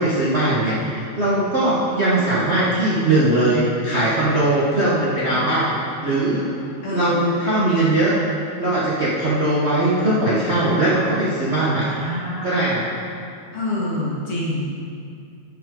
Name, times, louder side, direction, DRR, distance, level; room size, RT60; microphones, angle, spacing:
voice 1, 0.0-5.8 6.0-6.5 6.9-8.1 8.6-11.9 12.4-12.8, right 1 dB, 70° right, -8 dB, 0.6 m, -20 dB
voice 2, 6.8-7.2 11.5-12.6 13.5-14.7, left 1 dB, 50° left, -6 dB, 2.6 m, -27 dB
10.5 x 8.1 x 3.8 m, 2.4 s
omnidirectional pair, 3.5 m